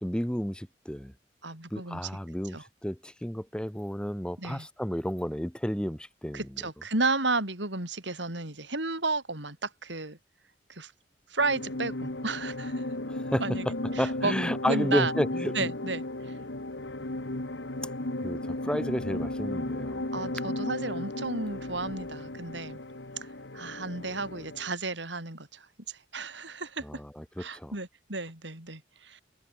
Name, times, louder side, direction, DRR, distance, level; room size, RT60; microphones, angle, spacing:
voice 1, 0.0-1.1 1.7-6.6 13.1-15.7 18.2-20.1 26.8-27.7, equal, 5° left, 1.2 m, -32 dB
voice 2, 1.4-2.0 2.5-2.6 4.4-4.7 6.3-10.2 10.7-10.9 11.3-12.9 13.4-13.6 14.0-14.3 14.6-15.1 15.5-16.0 20.1-22.8 23.5-26.8 27.4-29.2, right 3 dB, 80° right, 7.0 m, -32 dB
sound 1, 11.4-24.7, left 1 dB, 80° left, 2.2 m, -35 dB
head